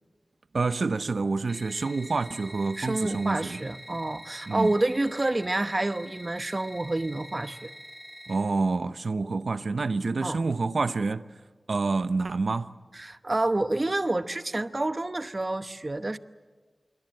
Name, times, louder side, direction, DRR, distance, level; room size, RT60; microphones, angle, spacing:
voice 1, 0.5-3.6 4.5-4.8 8.3-11.2 11.7-12.7, right 3 dB, 70° right, 0.7 m, -28 dB
sound 1, 1.5-8.3, equal, 10° left, 5.9 m, -46 dB
voice 2, 2.8-7.7 10.2-10.4 12.9-16.2, right 2 dB, 35° right, 0.9 m, -28 dB
26.0 x 23.5 x 7.8 m
wide cardioid pair, 80°, 0 cm